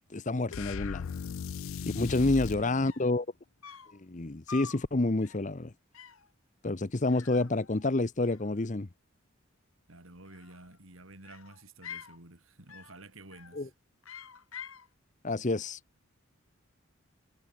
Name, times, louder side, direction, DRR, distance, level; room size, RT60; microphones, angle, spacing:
voice 1, 0.1-1.1 1.9-3.3 4.0-5.7 6.6-8.9 13.5-13.7 15.2-15.8, left 2 dB, 35° left, 0.8 m, -28 dB
sound 1, 0.5-2.7, left 6 dB, 70° left, 0.4 m, -37 dB
voice 2, 1.9-2.9 9.9-13.7, right 2 dB, 75° right, 4.5 m, -52 dB
sound 2, 2.8-3.2 3.6-4.0 4.5-4.8 5.2-5.5 5.9-6.3 7.1-8.0 8.2-8.9 10.1-10.8 11.2-12.2 12.7-13.0 13.3-13.7 14.0-14.9, left 7 dB, 85° left, 4.0 m, -47 dB
head